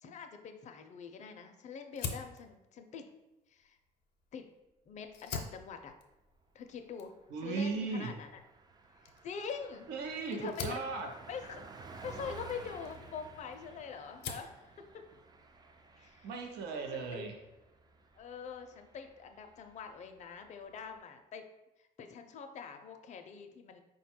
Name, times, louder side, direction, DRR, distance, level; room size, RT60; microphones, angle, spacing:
voice 1, 0.0-3.1 3.5-3.8 4.3-4.5 4.9-5.9 6.5-7.1 7.4-8.3 9.0-9.9 10.3-10.8 11.3-11.6 12.0-15.0 16.0-16.3 16.9-17.2 18.2-21.4 21.8-23.8, left 6 dB, 45° left, 6 dB, 0.5 m, -44 dB
Fire, 1.9-4.6 5.0-13.7 14.0-14.6, left 5 dB, 85° left, 0.6 m, -46 dB
Car passing by, 5.8-6.0 6.3-6.5 6.7-21.0, right 4 dB, 25° right, 0.4 m, -55 dB
voice 2, 7.3-8.1 9.9-11.1 16.2-17.4, right 4 dB, 75° right, 4 dB, 0.6 m, -37 dB
4.5 x 2.2 x 4.3 m, 0.96 s
cardioid pair, 110°, 17 cm